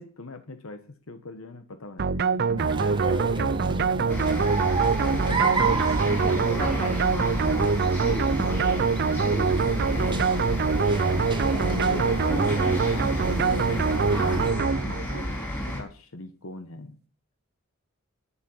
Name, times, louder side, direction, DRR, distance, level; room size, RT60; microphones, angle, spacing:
voice 1, 0.0-3.7 5.0-5.6 5.9-6.7 8.3-9.6 11.5-12.3 12.6-17.0, left 2 dB, 80° left, 10 dB, 1.1 m, -41 dB
sound 1, 2.0-15.3, right 5 dB, 50° right, 0.5 m, -24 dB
sound 2, 2.6-14.5, right 3 dB, 20° right, 1.2 m, -32 dB
sound 3, 4.1-15.8, equal, 10° left, 4.6 m, -31 dB
voice 2, 6.2-7.6 10.0-10.4, equal, 30° left, 0 dB, 4.0 m, -38 dB
11.5 x 7.2 x 8.7 m, 0.41 s
head